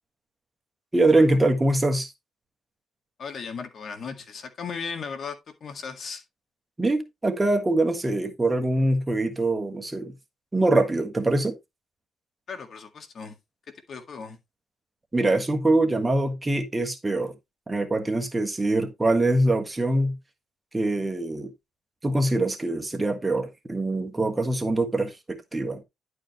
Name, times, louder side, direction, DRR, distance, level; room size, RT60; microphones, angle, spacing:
voice 1, 0.9-2.1 6.8-10.1 10.5-11.5 15.1-17.3 17.7-20.2 20.7-21.5 22.0-25.8, right 2 dB, 15° right, 1.4 m, -23 dB
voice 2, 3.2-6.2 12.5-13.3 13.9-14.4, left 5 dB, 55° left, 1.8 m, -36 dB
11.0 x 5.0 x 3.0 m
cardioid pair, 90°, 0 cm